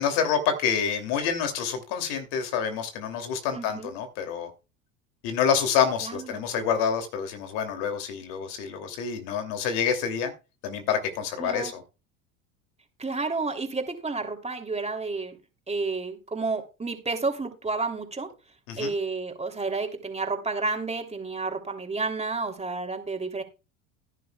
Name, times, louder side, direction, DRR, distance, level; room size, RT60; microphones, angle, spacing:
voice 1, 0.0-4.5 5.2-10.3 10.6-11.8 18.7-18.9, left 7 dB, 70° left, 6 dB, 2.9 m, -27 dB
voice 2, 3.5-3.9 6.0-6.4 11.4-11.7 13.0-15.4 15.7-18.3 18.8-23.4, right 3 dB, 15° right, 4 dB, 3.0 m, -31 dB
16.0 x 10.5 x 2.3 m, 0.30 s
hypercardioid pair, 85°, 40 cm